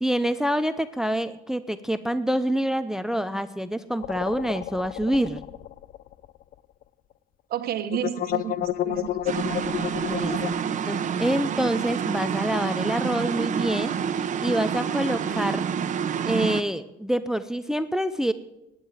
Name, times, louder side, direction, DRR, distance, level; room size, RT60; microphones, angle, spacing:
voice 1, 0.0-5.4 10.0-10.6 10.9-15.7 16.3-18.3, equal, 5° right, 13 dB, 0.5 m, -26 dB
sound 1, 4.0-6.5 6.8-6.9 7.9-10.6, left 13 dB, 55° left, 0.5 m, -31 dB
voice 2, 7.5-9.7 10.4-10.7, right 10 dB, 65° right, 9 dB, 1.3 m, -32 dB
sound 2, 9.3-16.6, right 7 dB, 45° right, 1.0 m, -28 dB
11.5 x 9.4 x 8.3 m, 0.91 s
cardioid pair, 110°, 17 cm